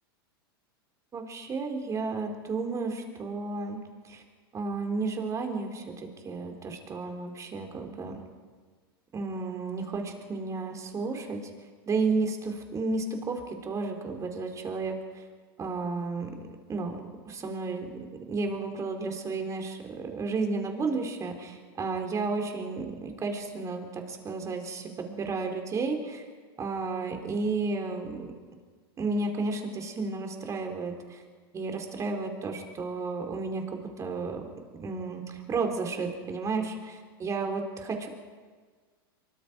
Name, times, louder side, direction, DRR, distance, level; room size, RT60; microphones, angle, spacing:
voice 1, 1.1-4.2 4.5-8.2 9.1-11.4 11.9-15.2 15.6-17.9 18.3-26.2 26.6-28.3 29.0-31.2 31.5-34.5 34.8-38.1, right 3 dB, 25° right, 3 dB, 4.2 m, -32 dB
24.5 x 23.5 x 5.3 m, 1.5 s
hypercardioid pair, 115°, 13 cm